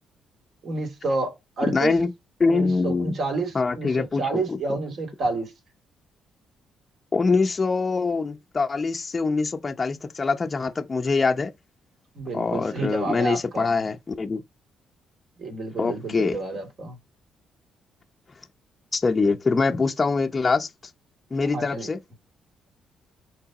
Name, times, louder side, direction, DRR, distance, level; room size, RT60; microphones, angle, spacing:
voice 1, 0.6-2.0 2.4-5.5 12.1-13.8 15.4-17.0 21.5-21.9, right 3 dB, 50° right, 2.8 m, -29 dB
voice 2, 1.7-2.1 2.4-3.1 3.5-4.2 4.5-4.6 7.1-11.5 12.3-14.4 15.8-16.4 18.9-20.7 21.3-22.0, left 4 dB, 30° left, 0.7 m, -24 dB
5.8 x 3.4 x 4.8 m
cardioid pair, 90°, 0 cm